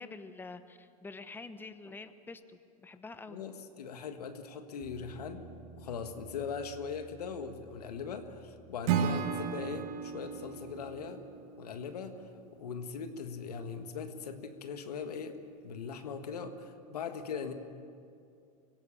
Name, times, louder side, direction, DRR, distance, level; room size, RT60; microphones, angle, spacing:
voice 1, 0.0-3.4, left 3 dB, 10° left, 10 dB, 1.0 m, -47 dB
voice 2, 3.3-5.4 5.8-11.2 11.6-12.3 12.6-15.4 15.6-17.5, left 6 dB, 85° left, 7 dB, 1.7 m, -40 dB
sound 1, 4.8-11.1, right 5 dB, 40° right, 6.5 m, -55 dB
Acoustic guitar / Strum, 8.8-12.0, right 8 dB, 60° right, 1.4 m, -34 dB
25.0 x 17.0 x 7.1 m, 2.4 s
hypercardioid pair, 95°, 20 cm